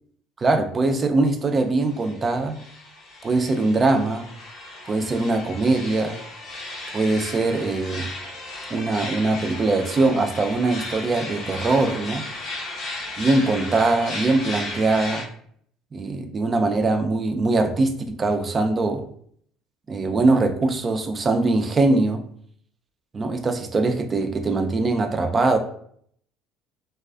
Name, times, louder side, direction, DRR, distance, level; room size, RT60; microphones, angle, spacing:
voice 1, 0.4-2.6 3.2-4.3 4.9-6.2 6.9-8.1 8.7-12.2 13.2-15.2 15.9-19.0 19.9-22.2 23.1-25.6, right 3 dB, 35° right, 6 dB, 0.4 m, -22 dB
sound 1, 1.9-15.2, left 2 dB, 55° left, 0.5 m, -35 dB
2.3 x 2.3 x 2.3 m, 0.63 s
hypercardioid pair, 60°, 0 cm